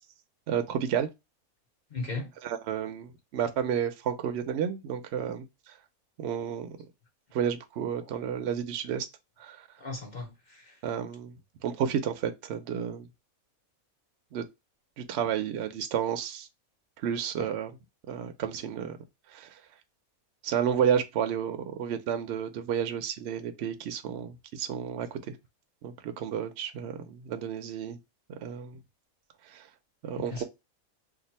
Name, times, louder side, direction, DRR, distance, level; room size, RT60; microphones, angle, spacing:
voice 1, 0.5-1.1 2.4-5.8 6.2-6.7 7.3-9.1 9.4-9.7 10.8-13.1 14.3-14.4 15.0-16.5 17.0-17.7 18.1-19.0 19.3-19.6 20.4-25.4 25.8-28.0 28.4-28.8 29.5-29.7 30.0-30.4, right 8 dB, 65° right, 0.7 m, -31 dB
voice 2, 1.9-2.3 9.8-10.8 17.4-17.5 30.2-30.4, left 3 dB, 55° left, 0.5 m, -37 dB
2.6 x 2.3 x 4.1 m
omnidirectional pair, 1.5 m